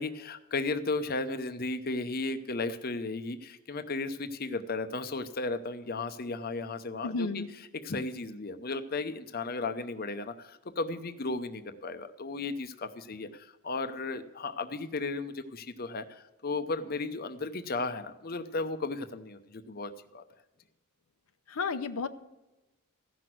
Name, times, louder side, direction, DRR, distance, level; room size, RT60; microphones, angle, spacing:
voice 1, 0.0-7.3 7.8-20.2, left 3 dB, 45° left, 9 dB, 0.7 m, -35 dB
voice 2, 7.0-7.5 21.5-22.1, left 4 dB, 85° left, 9 dB, 0.7 m, -32 dB
15.0 x 6.1 x 7.6 m, 1.0 s
head